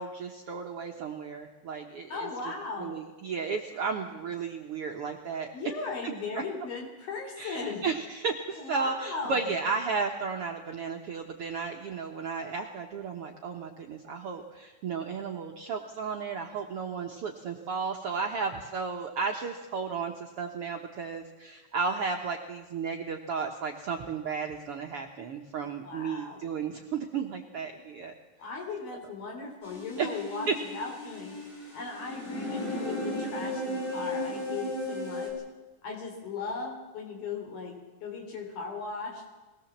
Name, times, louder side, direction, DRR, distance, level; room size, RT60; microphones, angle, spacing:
voice 1, 0.0-2.3 2.8-5.5 6.3-6.4 7.4-28.1 30.0-30.2 30.5-30.6, right 5 dB, 65° right, 2 dB, 1.4 m, -33 dB
voice 2, 2.1-2.9 5.5-7.9 8.6-9.5 25.8-26.4 28.4-31.4 31.7-35.3 35.8-39.2, left 4 dB, 85° left, 2 dB, 5.4 m, -37 dB
sound 1, 29.6-35.3, left 1 dB, 40° left, 5.4 m, -35 dB
21.0 x 17.5 x 7.3 m, 1.2 s
omnidirectional pair, 4.1 m